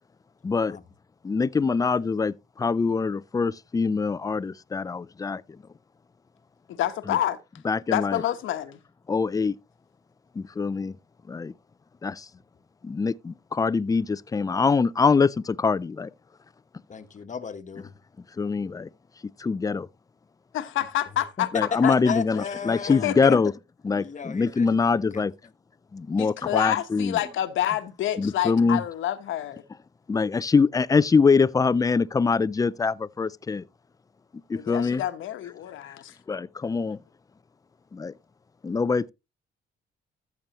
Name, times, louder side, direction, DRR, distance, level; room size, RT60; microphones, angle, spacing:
voice 1, 0.4-0.8 1.2-5.4 7.1-7.2 7.6-8.2 9.1-9.6 10.4-11.0 11.3-11.5 12.0-12.3 12.8-16.1 18.4-18.9 19.4-19.9 21.5-23.5 23.8-25.3 25.9-27.2 28.2-28.8 30.1-33.6 34.5-35.0 36.3-37.0 37.9-38.1 38.6-39.1, left 4 dB, 20° left, 0.4 m, -24 dB
voice 2, 6.7-7.4 7.9-8.8 20.5-21.5 21.8-21.9 23.0-23.4 26.2-29.6 34.5-36.1, left 12 dB, 80° left, 1.1 m, -28 dB
voice 3, 16.9-18.0 21.4-23.1 23.9-24.7 25.1-25.2, left 6 dB, 40° left, 1.2 m, -34 dB
14.0 x 7.0 x 3.0 m
cardioid pair, 90°, 20 cm